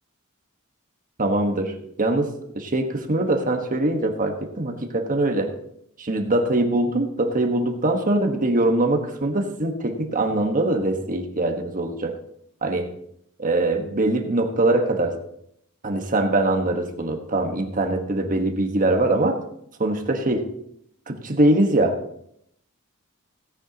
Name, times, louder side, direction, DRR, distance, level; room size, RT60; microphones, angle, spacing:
voice 1, 1.2-5.5 6.0-12.2 12.6-12.9 13.4-15.2 15.8-19.4 19.8-20.5 21.1-22.0, right 2 dB, 40° right, 4 dB, 1.2 m, -22 dB
17.0 x 9.8 x 2.8 m, 0.72 s
head